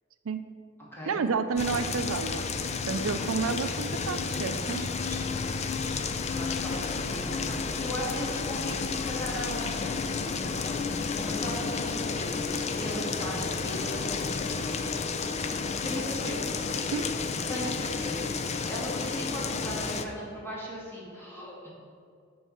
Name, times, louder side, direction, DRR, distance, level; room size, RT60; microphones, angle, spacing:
voice 1, 1.1-2.6 2.9-4.8 16.9-17.1, right 5 dB, 80° right, 10 dB, 0.4 m, -30 dB
sound 1, 1.6-20.1, left 4 dB, 35° left, 0.4 m, -31 dB
voice 2, 4.5-6.0 6.3-10.1 10.4-14.5 15.8-16.5 17.5-18.3 18.6-21.7, equal, 10° left, -6 dB, 2.3 m, -38 dB
7.4 x 4.7 x 7.1 m, 2.3 s
head